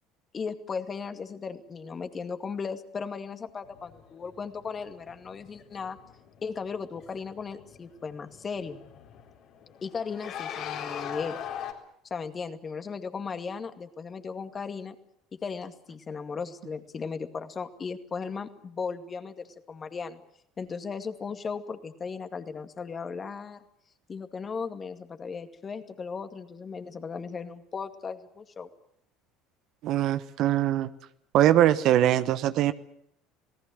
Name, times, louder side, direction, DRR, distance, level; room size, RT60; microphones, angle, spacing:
voice 1, 0.3-6.0 6.4-8.8 9.8-11.4 12.1-15.0 15.3-20.2 20.6-23.6 24.1-28.7, left 5 dB, 30° left, 8 dB, 2.2 m, -36 dB
sound 1, 3.6-11.7, left 9 dB, 60° left, 4.1 m, -42 dB
voice 2, 29.8-30.9 31.3-32.7, right 12 dB, 55° right, 13 dB, 1.0 m, -22 dB
28.0 x 18.5 x 7.7 m, 0.71 s
hypercardioid pair, 70°, 0 cm